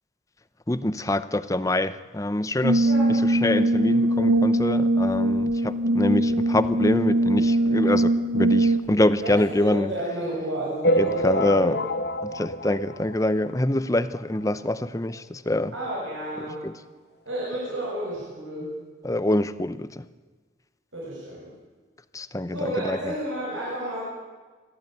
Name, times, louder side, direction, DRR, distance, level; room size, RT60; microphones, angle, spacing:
voice 1, 0.7-9.9 11.0-11.8 12.2-15.7 16.6-16.7 19.0-20.1 22.1-23.1, left 1 dB, 15° left, 13 dB, 0.6 m, -25 dB
Brass instrument, 2.6-9.0, right 1 dB, 65° right, 0.8 m, -21 dB
voice 2, 9.2-11.8 15.7-16.6 17.3-18.8 20.9-21.5 22.5-24.0, right 1 dB, 90° right, -5 dB, 7.5 m, -31 dB
sound 1, 10.8-13.7 14.2-14.3 14.4-14.6 14.9-15.0 15.9-16.0 16.4-16.5, equal, 55° left, 0.9 m, -27 dB
23.0 x 14.5 x 9.3 m, 1.4 s
head